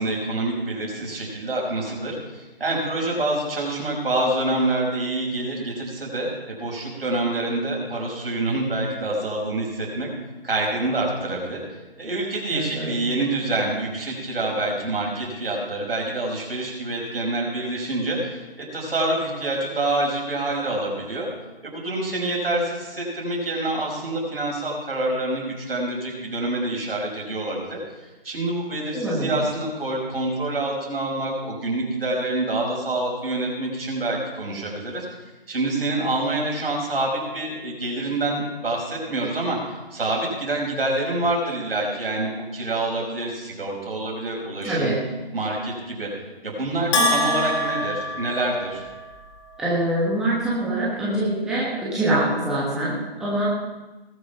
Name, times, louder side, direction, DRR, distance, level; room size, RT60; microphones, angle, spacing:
voice 1, 0.0-10.1 10.4-11.6 12.0-21.3 21.6-27.8 28.2-35.1 35.5-45.0 45.3-46.1 46.4-48.8, right 2 dB, 65° right, -1 dB, 5.5 m, -26 dB
voice 2, 12.5-13.1 28.9-29.5 44.7-45.0 49.6-53.5, right 1 dB, ahead, -8 dB, 1.2 m, -24 dB
Bell, 46.9-49.1, left 1 dB, 30° left, 3.3 m, -24 dB
19.5 x 6.9 x 5.7 m, 1.1 s
hypercardioid pair, 160°, 31 cm